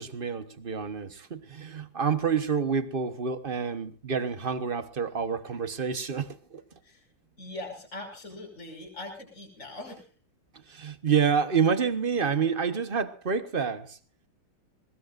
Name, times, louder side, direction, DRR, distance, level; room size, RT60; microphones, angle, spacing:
voice 1, 0.0-6.6 10.7-14.0, right 6 dB, 35° right, 1.0 m, -28 dB
voice 2, 7.4-10.1, left 2 dB, 35° left, 6.4 m, -41 dB
22.0 x 20.5 x 2.5 m
omnidirectional pair, 2.3 m